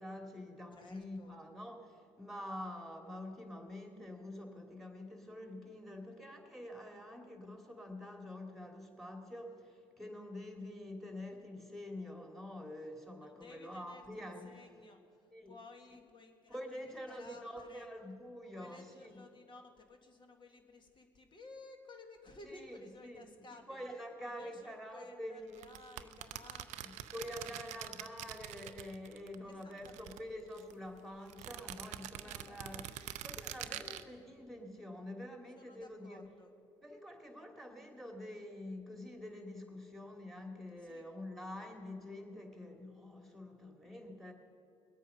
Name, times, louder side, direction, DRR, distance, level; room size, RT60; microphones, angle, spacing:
voice 1, 0.0-14.5 15.3-15.5 16.5-19.2 22.4-23.2 23.7-26.1 26.8-32.8 33.2-36.2 36.8-44.3, left 1 dB, ahead, 3 dB, 2.6 m, -47 dB
voice 2, 0.7-1.4 13.2-17.9 18.5-23.8 24.2-27.9 28.9-29.0 29.4-30.2 32.2-33.4 35.6-36.5 40.8-41.1, left 2 dB, 40° left, 4 dB, 1.9 m, -56 dB
sound 1, 25.6-29.4 29.6-30.7 31.3-34.0, right 13 dB, 65° right, 0.5 m, -45 dB
20.5 x 8.3 x 5.7 m, 2.5 s
hypercardioid pair, 60°, 13 cm